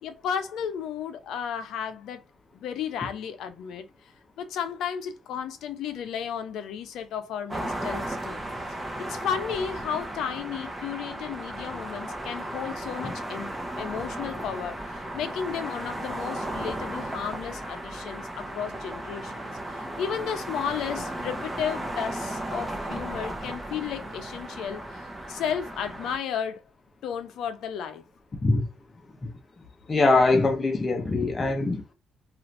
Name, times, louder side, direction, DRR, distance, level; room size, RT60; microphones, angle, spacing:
voice 1, 0.0-2.2 2.5-3.9 4.4-8.4 9.0-19.4 19.7-26.6 27.0-28.0, left 8 dB, 80° left, 0.6 m, -33 dB
sound 1, 7.5-26.2, right 1 dB, 15° right, 0.8 m, -35 dB
voice 2, 29.9-31.8, left 3 dB, 30° left, 0.7 m, -22 dB
2.8 x 2.5 x 3.1 m
cardioid pair, 90°, 0 cm